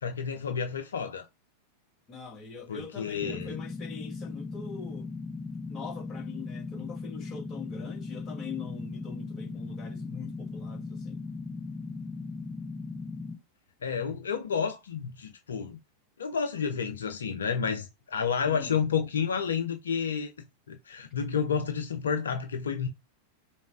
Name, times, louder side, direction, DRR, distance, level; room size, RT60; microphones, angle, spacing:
voice 1, 0.0-1.3 2.7-3.6 13.8-15.8 16.2-20.3 20.7-22.9, left 6 dB, 65° left, 0.5 m, -30 dB
voice 2, 2.1-5.1 5.7-11.2 18.4-18.8, left 5 dB, 25° left, 1.2 m, -43 dB
sound 1, 3.2-13.4, left 3 dB, 5° left, 0.6 m, -38 dB
5.1 x 2.1 x 2.4 m
figure-of-eight pair, 90°, 0 cm